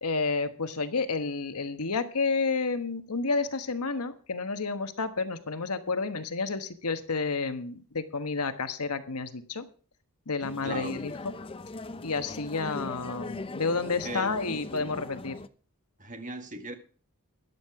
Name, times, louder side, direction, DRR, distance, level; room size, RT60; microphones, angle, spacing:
voice 1, 0.0-9.7 10.3-11.1 12.0-15.4, left 4 dB, 85° left, 10 dB, 1.2 m, -30 dB
sound 1, 10.4-15.5, left 2 dB, 25° left, 0.5 m, -40 dB
voice 2, 10.6-11.0 14.0-14.6 16.0-16.7, right 2 dB, 35° right, 7 dB, 1.7 m, -38 dB
13.5 x 11.0 x 4.8 m, 0.40 s
head